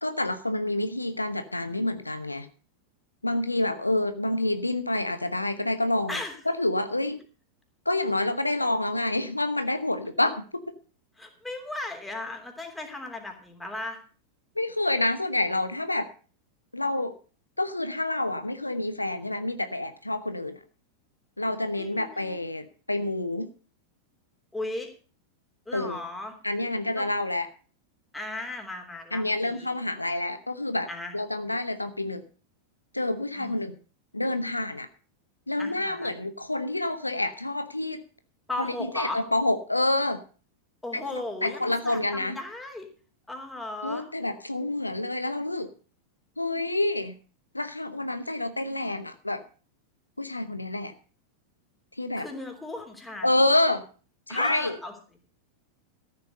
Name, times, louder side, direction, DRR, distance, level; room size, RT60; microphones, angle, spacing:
voice 1, 0.0-2.5 3.2-6.2 6.5-7.2 7.8-10.6 14.6-16.1 16.7-17.1 17.6-20.6 21.4-23.5 25.7-26.0 26.4-27.5 29.1-30.9 31.1-32.2 32.9-33.8 34.1-34.9 35.5-38.0 38.6-40.2 40.9-42.4 43.8-45.7 46.4-47.1 47.5-49.4 50.2-50.9 52.0-52.3 53.2-53.8 54.3-54.8, left 2 dB, 85° left, 10 dB, 1.0 m, -28 dB
voice 2, 11.2-14.0 21.8-22.4 24.5-24.9 25.6-26.3 26.9-27.1 28.1-29.7 30.9-31.2 33.3-33.6 35.6-36.1 38.5-39.2 40.8-42.9 43.3-44.0 52.2-53.3 54.3-54.9, left 2 dB, 5° left, 3 dB, 3.3 m, -36 dB
14.0 x 8.2 x 6.5 m, 0.38 s
figure-of-eight pair, 90°, 0 cm